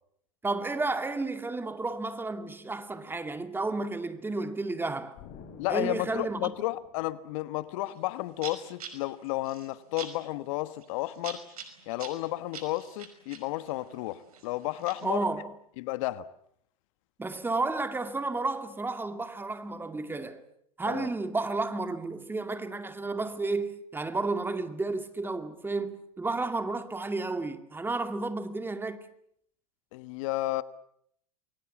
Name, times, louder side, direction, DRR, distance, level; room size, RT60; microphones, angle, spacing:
voice 1, 0.4-5.2 5.7-6.5 15.0-15.5 17.2-20.4 20.8-29.0, right 3 dB, 10° right, 2.2 m, -32 dB
Explosion, 5.2-7.8, left 6 dB, 45° left, 6.4 m, -51 dB
voice 2, 5.6-11.4 11.9-15.2 15.8-16.3 20.9-21.1 29.9-30.6, left 17 dB, 60° left, 1.3 m, -32 dB
sound 1, 7.9-8.0 8.4-15.2, right 7 dB, 85° right, 5.3 m, -46 dB
28.0 x 22.5 x 7.3 m
hypercardioid pair, 100°, 19 cm